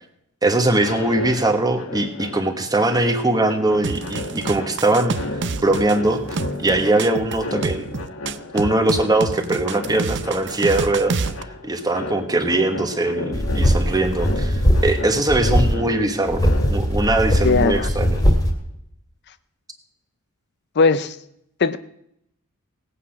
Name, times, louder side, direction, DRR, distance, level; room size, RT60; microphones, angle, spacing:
voice 1, 0.4-5.2 5.6-6.2 6.6-7.9 8.5-11.2 11.6-16.4 16.7-18.2, right 2 dB, 15° right, 1.3 m, -21 dB
sound 1, 0.7-18.6, left 2 dB, 65° left, 1.6 m, -34 dB
sound 2, 3.8-11.4, right 4 dB, 55° right, 0.6 m, -28 dB
wings low, 13.3-15.0 15.3-15.7 16.3-18.5, equal, 15° left, 2.1 m, -19 dB
voice 2, 17.4-17.9 20.8-21.2 21.6-21.8, left 4 dB, 50° left, 0.5 m, -18 dB
18.0 x 8.4 x 5.8 m
head